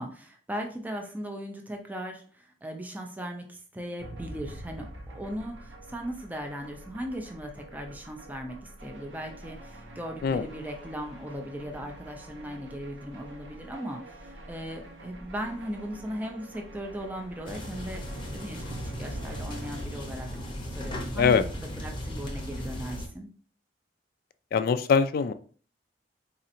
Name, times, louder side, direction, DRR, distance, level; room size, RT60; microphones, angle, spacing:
voice 1, 0.0-18.0 18.3-18.7 19.0-20.3 20.7-23.3, equal, 10° right, 3 dB, 0.4 m, -38 dB
sound 1, 4.0-19.8, right 1 dB, 85° right, 0.7 m, -45 dB
sound 2, 17.5-23.1, equal, 25° left, 0.7 m, -37 dB
voice 2, 24.5-25.3, left 6 dB, 55° left, 12 dB, 0.3 m, -22 dB
4.1 x 2.8 x 2.5 m, 0.43 s
head